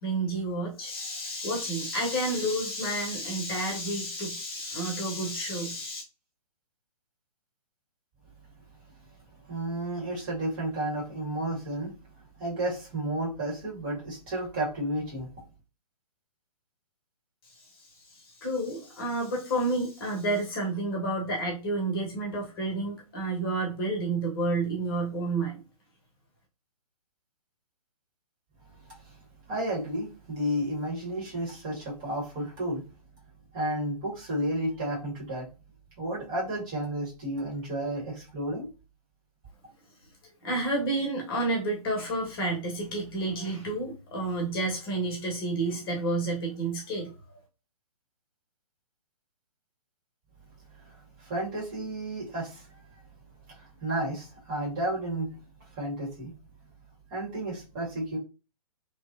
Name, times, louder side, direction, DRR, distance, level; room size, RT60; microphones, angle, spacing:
voice 1, 0.0-6.0 17.5-25.6 40.4-47.1, right 2 dB, 35° left, -1 dB, 1.2 m, -30 dB
voice 2, 9.4-11.9 12.4-15.3 28.9-29.2 29.5-32.8 33.5-35.5 36.0-38.7 50.8-52.8 53.5-55.4 55.7-56.3 57.1-58.2, right 1 dB, 30° right, -5 dB, 2.0 m, -32 dB
3.1 x 3.0 x 2.5 m, 0.31 s
figure-of-eight pair, 125°, 20 cm